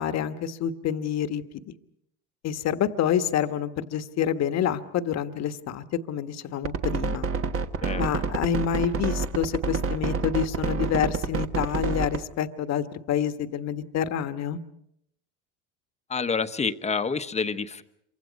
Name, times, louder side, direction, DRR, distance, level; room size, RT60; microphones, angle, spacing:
voice 1, 0.0-1.7 2.4-7.3 7.9-14.6, left 9 dB, 45° left, 10 dB, 1.4 m, -28 dB
sound 1, 6.6-12.2, right 5 dB, 40° right, 1.3 m, -27 dB
voice 2, 16.1-17.8, left 5 dB, 20° left, 10 dB, 1.1 m, -28 dB
27.0 x 24.5 x 5.2 m, 0.76 s
supercardioid pair, 100°, 36 cm